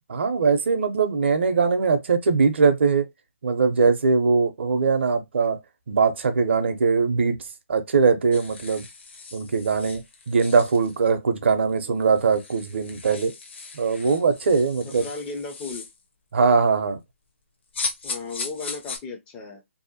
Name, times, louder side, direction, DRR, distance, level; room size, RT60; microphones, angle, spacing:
voice 1, 0.1-3.1 3.4-5.6 5.9-7.4 7.7-8.8 9.3-13.3 13.7-15.0 16.3-17.0, right 5 dB, 55° right, 0.6 m, -21 dB
sound 1, 8.3-11.0 11.7-11.8 12.0-16.0 17.7-19.0, left 4 dB, 55° left, 0.6 m, -37 dB
voice 2, 14.8-15.9 18.0-19.6, left 4 dB, 15° left, 0.4 m, -35 dB
2.7 x 2.1 x 2.7 m
figure-of-eight pair, 145°, 7 cm